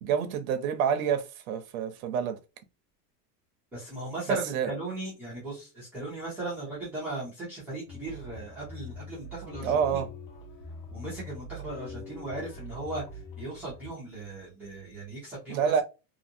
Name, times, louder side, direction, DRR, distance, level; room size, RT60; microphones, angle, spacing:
voice 1, 0.0-2.4 4.3-4.7 9.6-10.1 15.5-15.8, right 7 dB, 60° right, 0.6 m, -27 dB
voice 2, 3.7-10.0 10.9-13.0 13.4-15.8, right 2 dB, 5° right, 0.3 m, -37 dB
sound 1, 7.9-13.9, left 3 dB, 60° left, 1.1 m, -43 dB
2.6 x 2.6 x 2.6 m
supercardioid pair, 160°, 49 cm